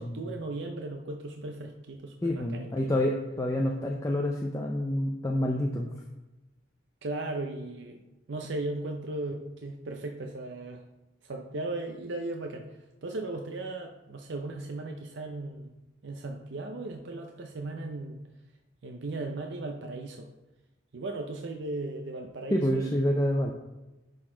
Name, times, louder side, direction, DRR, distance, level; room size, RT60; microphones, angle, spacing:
voice 1, 0.0-3.0 7.0-8.0 8.3-10.8 11.2-15.7 16.0-18.2 18.8-20.3 20.9-23.2, right 2 dB, 60° right, 3 dB, 0.5 m, -37 dB
voice 2, 2.2-5.9 22.5-23.5, left 1 dB, 15° left, 1 dB, 0.4 m, -28 dB
10.5 x 4.0 x 3.8 m, 1.0 s
head